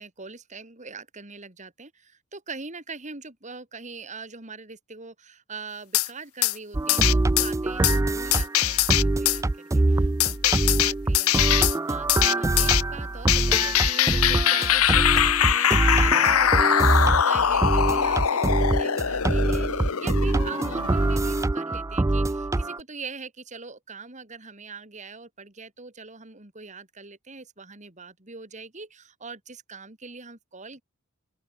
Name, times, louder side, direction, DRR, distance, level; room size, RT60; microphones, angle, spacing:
voice 1, 0.0-30.8, right 4 dB, 35° right, 3.4 m, -42 dB
sound 1, 5.9-6.1 6.4-6.6 6.9-7.5 7.8-8.0 8.3-9.4 10.2-11.8 12.1-12.8 13.3-21.4, left 10 dB, 80° left, 0.9 m, -22 dB
sound 2, 6.7-22.8, right 2 dB, 15° right, 0.3 m, -24 dB
open air
head